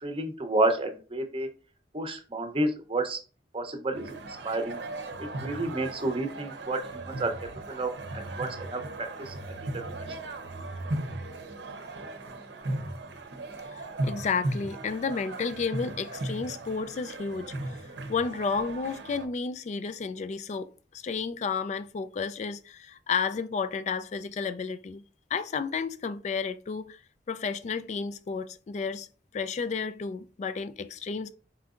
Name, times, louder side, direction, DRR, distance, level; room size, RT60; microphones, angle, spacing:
voice 1, 0.0-1.5 1.9-3.2 3.5-4.2 4.4-4.8 5.4-7.3 7.7-8.8 9.3-9.6, right 2 dB, 30° right, 0.7 m, -30 dB
sound 1, 3.9-19.3, right 2 dB, 70° right, 0.7 m, -37 dB
voice 2, 13.7-17.8 18.1-25.0 25.3-27.0 27.3-29.1 29.3-31.3, left 5 dB, 40° left, 0.3 m, -32 dB
4.3 x 3.9 x 2.4 m
head